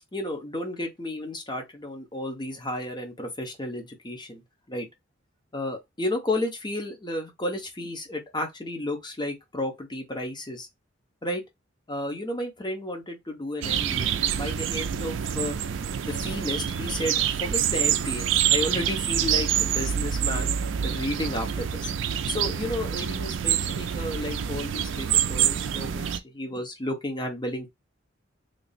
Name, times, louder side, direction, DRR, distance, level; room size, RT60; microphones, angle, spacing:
voice 1, 0.1-4.4 4.7-4.9 5.5-10.7 11.2-11.4 11.9-15.6 16.0-20.5 20.8-21.9 22.3-27.7, left 1 dB, 20° left, 0.9 m, -32 dB
sound 1, 13.6-26.2, right 9 dB, 65° right, 0.4 m, -26 dB
3.3 x 2.0 x 4.1 m
head